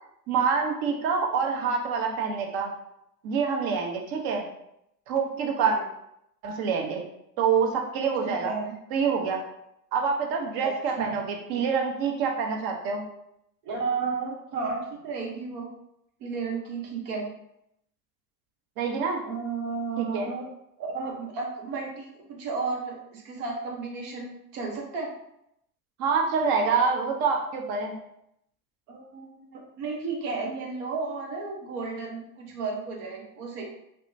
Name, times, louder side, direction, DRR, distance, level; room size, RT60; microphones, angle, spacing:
voice 1, 0.3-2.7 3.2-4.5 5.1-5.8 6.4-7.0 7.4-8.5 8.9-9.4 9.9-13.0 18.8-19.2 20.0-20.3 26.0-27.9, right 5 dB, 45° right, 2 dB, 0.9 m, -26 dB
voice 2, 8.3-8.7 10.6-11.2 13.6-15.7 16.2-17.3 19.2-20.5 20.8-25.1 28.9-33.6, right 4 dB, 65° right, 0 dB, 1.2 m, -33 dB
3.4 x 2.7 x 2.7 m, 0.78 s
hypercardioid pair, 90°, 49 cm